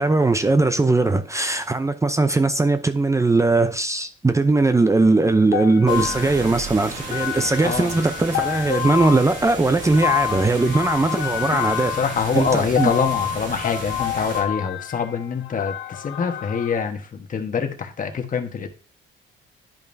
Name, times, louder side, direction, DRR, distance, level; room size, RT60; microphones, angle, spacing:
voice 1, 0.0-12.0 12.3-12.9, right 3 dB, 15° right, 0.6 m, -19 dB
sound 1, 5.5-16.8, left 12 dB, 70° left, 0.7 m, -28 dB
sound 2, 5.9-14.4, right 3 dB, 75° right, 2.2 m, -34 dB
voice 2, 7.6-7.9 12.0-18.7, left 6 dB, 40° left, 1.3 m, -25 dB
10.5 x 5.4 x 2.7 m
cardioid pair, 90°, 20 cm